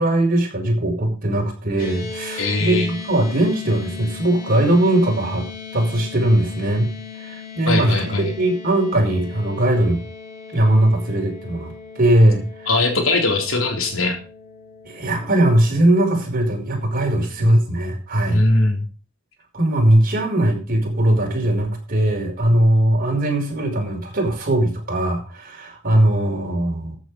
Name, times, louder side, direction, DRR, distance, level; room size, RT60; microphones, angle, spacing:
voice 1, 0.0-5.4 5.7-6.9 7.2-10.0 10.5-12.4 14.9-18.4 19.5-27.0, right 1 dB, 45° right, 2 dB, 5.2 m, -19 dB
sound 1, 1.8-16.2, left 5 dB, 45° left, 3.0 m, -38 dB
voice 2, 2.4-2.9 7.7-8.3 12.7-14.2 17.4-17.5 18.3-18.8, left 2 dB, 70° left, 3 dB, 3.7 m, -20 dB
14.0 x 8.3 x 5.2 m, 0.36 s
head